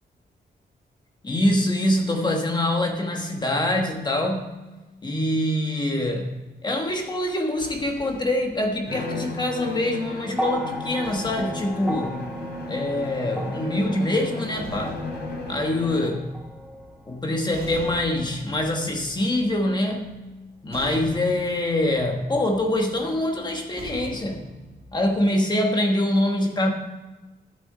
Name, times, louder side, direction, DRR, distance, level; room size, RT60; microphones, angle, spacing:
voice 1, 1.2-4.6 5.0-12.2 12.7-15.0 15.5-16.3 17.1-20.2 20.6-24.5 24.9-26.7, left 1 dB, 25° left, 2 dB, 1.3 m, -24 dB
sound 1, 6.9-10.1 11.0-13.3 14.2-25.3, right 1 dB, 35° right, 2.4 m, -45 dB
Bowed string instrument, 8.9-16.3, left 3 dB, 90° left, 3.2 m, -35 dB
sound 2, 10.3-18.7 19.7-19.8, equal, 5° right, 1.0 m, -36 dB
12.0 x 7.7 x 5.5 m, 1.2 s
wide cardioid pair, 150°, 18 cm